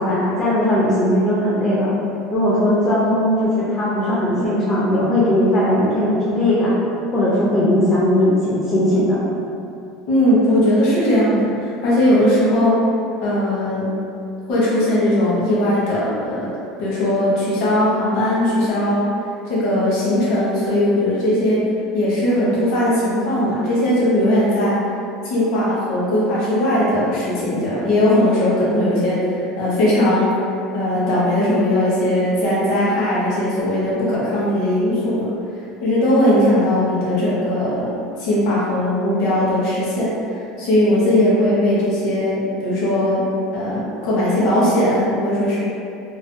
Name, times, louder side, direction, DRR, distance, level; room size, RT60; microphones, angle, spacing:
voice 1, 0.0-1.9 2.3-6.7 7.1-9.2, left 1 dB, 20° left, -9 dB, 0.4 m, -18 dB
voice 2, 10.1-12.7 13.2-13.8 14.5-16.5 16.8-19.0 19.4-21.6 21.9-24.7 25.2-30.3 30.7-35.2 35.8-40.1 40.3-43.2 43.5-45.6, left 1 dB, 50° left, -8 dB, 0.8 m, -19 dB
2.4 x 2.2 x 2.5 m, 2.6 s
cardioid pair, 170°, 0 cm